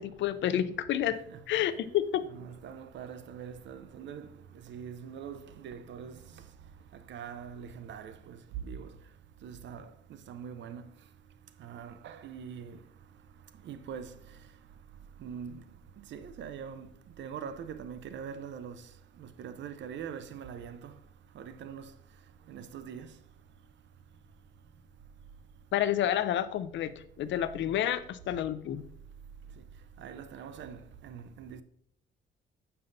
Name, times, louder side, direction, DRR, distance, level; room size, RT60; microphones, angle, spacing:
voice 1, 0.0-1.2 1.5-2.3 25.7-26.9 27.2-28.8, left 11 dB, 70° left, 0.5 m, -29 dB
voice 2, 1.3-1.7 2.2-4.3 4.7-6.2 7.1-8.4 8.6-8.9 9.4-9.9 10.3-10.9 11.6-12.8 13.6-14.1 15.2-15.6 16.1-16.9 17.2-18.8 19.2-20.9 21.3-21.9 22.5-23.1 30.0-31.6, right 7 dB, 65° right, 0.6 m, -43 dB
7.9 x 5.5 x 2.6 m
cardioid pair, 90°, 20 cm